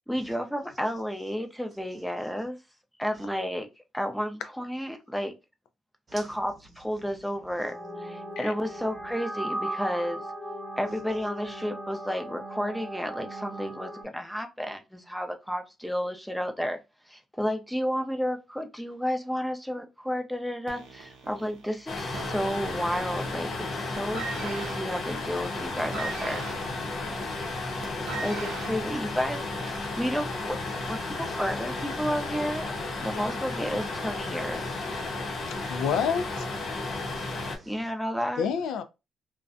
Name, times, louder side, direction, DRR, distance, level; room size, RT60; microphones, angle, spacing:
voice 1, 0.1-2.6 3.0-3.7 3.9-5.3 6.1-10.2 10.8-16.8 17.1-26.4 28.2-30.6 30.8-32.7 33.0-34.9 37.7-38.5, equal, ahead, 0.5 m, -32 dB
sound 1, 7.6-14.0, right 1 dB, 20° left, 0.9 m, -37 dB
sound 2, 20.7-23.0 23.3-23.7 24.0-29.9 30.7-30.8, right 4 dB, 90° right, 0.5 m, -40 dB
sound 3, 21.9-37.6, left 2 dB, 60° left, 0.7 m, -33 dB
voice 2, 27.2-28.2 35.4-35.7 36.8-37.7, right 2 dB, 35° right, 0.8 m, -54 dB
voice 3, 35.7-36.5 38.4-38.8, left 7 dB, 80° left, 0.3 m, -28 dB
2.5 x 2.1 x 2.4 m
cardioid pair, 90°, 0 cm